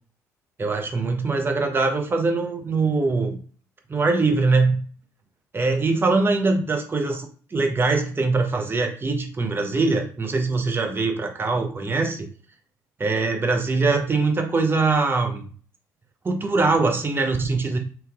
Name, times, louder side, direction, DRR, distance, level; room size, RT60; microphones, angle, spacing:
voice 1, 0.6-3.4 3.9-4.8 5.5-12.3 13.0-15.4 16.2-17.8, right 3 dB, 25° right, 3 dB, 0.7 m, -22 dB
3.6 x 2.8 x 2.3 m, 0.42 s
figure-of-eight pair, 50°, 10 cm